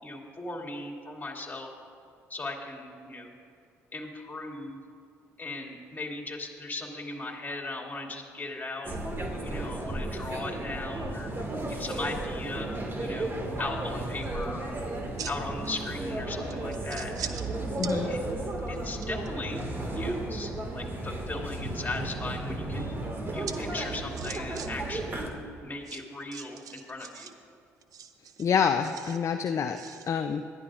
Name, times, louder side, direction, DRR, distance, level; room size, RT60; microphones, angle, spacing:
voice 1, 0.0-1.7 2.3-3.3 3.9-4.8 5.4-8.9 9.4-11.3 11.7-13.3 13.6-14.7 15.2-17.4 18.1-18.2 18.7-19.6 19.9-22.9 23.3-25.2 25.6-27.3, left 2 dB, 25° left, 0 dB, 2.6 m, -38 dB
sound 1, 8.8-25.3, right 2 dB, 30° right, 2.0 m, -34 dB
sound 2, 14.2-14.4 14.9-15.7 16.0-16.1 16.5-17.5 17.8-17.9 18.4-19.3 21.4-22.0 23.5-23.6 23.8-24.7 24.9-25.0 25.8-27.3 27.8-29.2 29.8-30.1, right 8 dB, 55° right, 0.7 m, -41 dB
voice 2, 17.8-18.1 28.4-29.8 30.1-30.4, left 7 dB, 45° left, 6 dB, 0.5 m, -27 dB
20.5 x 12.0 x 2.5 m, 2.5 s
hypercardioid pair, 55°, 7 cm